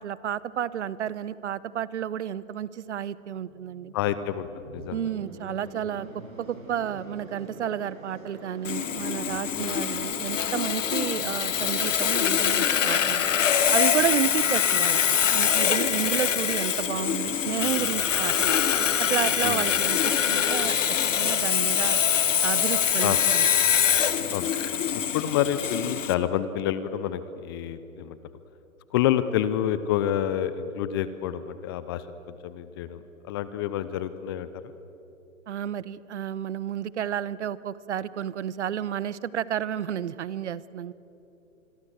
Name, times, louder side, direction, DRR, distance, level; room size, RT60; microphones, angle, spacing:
voice 1, 0.0-3.9 4.9-13.3 13.7-15.0 15.3-18.6 19.1-20.8 21.2-22.0 22.4-23.5 35.5-40.9, right 9 dB, 55° right, 19 dB, 1.0 m, -31 dB
sound 1, 3.3-21.2, right 2 dB, 75° right, 6.2 m, -44 dB
voice 2, 3.9-5.0 9.5-9.8 19.4-19.8 23.0-23.2 24.3-24.5 25.1-28.2 28.9-34.5, left 11 dB, 20° left, 13 dB, 0.5 m, -28 dB
Sawing, 8.6-26.1, left 8 dB, 65° left, 1.6 m, -24 dB
26.5 x 23.0 x 8.0 m, 3.0 s
figure-of-eight pair, 130°, 41 cm